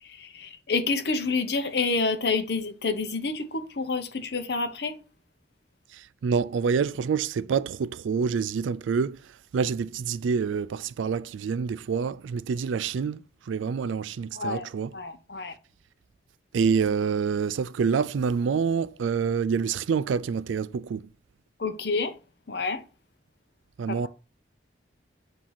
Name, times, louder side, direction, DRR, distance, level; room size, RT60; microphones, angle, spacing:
voice 1, 0.0-5.0 14.3-14.7 14.9-15.5 21.6-22.2 22.5-22.8, left 4 dB, 60° left, 0.8 m, -28 dB
voice 2, 5.9-9.2 9.5-13.2 13.5-14.9 16.5-21.0 23.8-24.1, right 6 dB, 85° right, 0.4 m, -27 dB
7.3 x 2.8 x 5.7 m
head